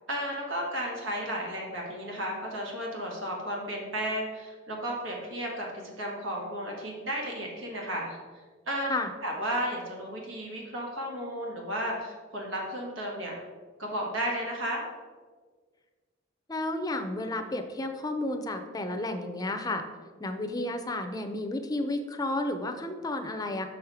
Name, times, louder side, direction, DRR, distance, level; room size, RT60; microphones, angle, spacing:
voice 1, 0.1-5.7 6.0-8.2 8.7-8.9 9.2-13.3 13.8-14.8, equal, 85° right, -1 dB, 1.7 m, -33 dB
voice 2, 16.5-19.9 20.2-23.7, left 2 dB, 20° left, 6 dB, 0.5 m, -32 dB
6.2 x 4.8 x 4.9 m, 1.5 s
head